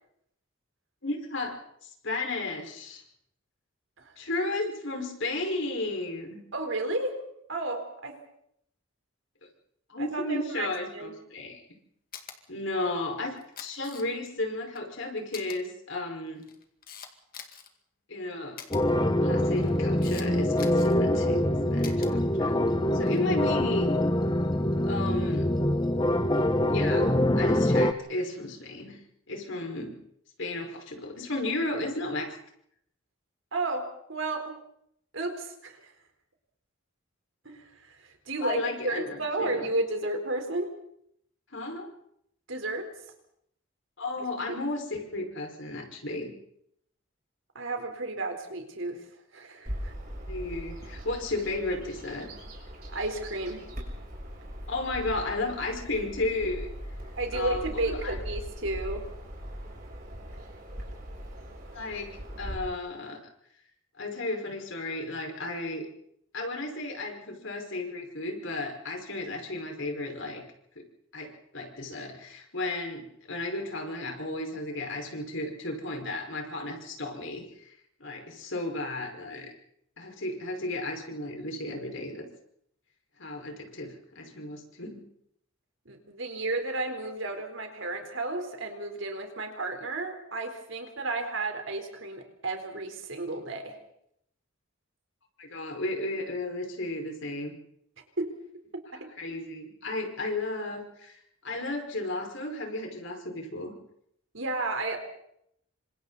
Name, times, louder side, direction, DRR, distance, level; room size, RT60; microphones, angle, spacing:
voice 1, 1.0-3.0 4.2-6.4 9.9-11.6 12.5-16.4 18.1-18.6 19.2-22.6 22.9-23.9 24.9-25.5 26.7-29.0 29.3-30.0 30.4-32.4 38.4-39.7 41.5-41.9 44.0-46.3 50.3-52.3 54.7-56.7 57.3-58.2 61.7-63.2 64.0-65.9 66.3-70.4 70.7-70.8 71.1-77.7 78.0-79.5 80.0-82.2 83.2-85.0 95.4-97.6 99.2-101.2 101.4-103.7, left 2 dB, 65° left, 2 dB, 5.3 m, -34 dB
voice 2, 6.5-7.2 7.5-8.2 10.0-11.1 33.5-34.6 35.1-35.9 37.4-38.6 38.8-40.7 42.5-42.9 44.2-44.6 47.5-49.0 49.3-49.9 52.9-53.7 57.2-59.1 85.9-93.8 98.2-98.3 98.9-99.1 104.3-105.0, right 2 dB, 65° right, 4 dB, 4.2 m, -33 dB
Camera, 12.1-12.4 13.4-14.3 14.7-14.8 15.3-15.6 16.3-17.7 18.6-18.8 19.5-20.3 20.6-21.0 21.8-22.1 23.0-23.3, left 8 dB, 45° left, 2.3 m, -44 dB
sound 1, 18.7-27.9, left 1 dB, 20° left, 0.9 m, -25 dB
Bird vocalization bird call bird song, 49.7-62.6, equal, 45° right, 6.2 m, -40 dB
28.5 x 26.0 x 4.2 m, 0.72 s
head